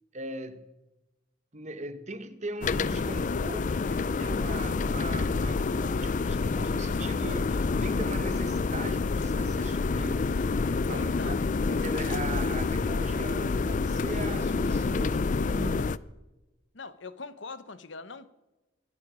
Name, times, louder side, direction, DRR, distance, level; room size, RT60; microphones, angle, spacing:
voice 1, 0.1-0.7 1.5-10.3 10.9-11.4 11.7-16.0, right 2 dB, 35° right, 1.1 m, -40 dB
sound 1, 2.6-16.0, left 4 dB, 40° left, 0.4 m, -28 dB
voice 2, 10.9-11.4 16.7-18.3, left 4 dB, 65° left, 0.9 m, -42 dB
24.0 x 9.0 x 5.0 m
head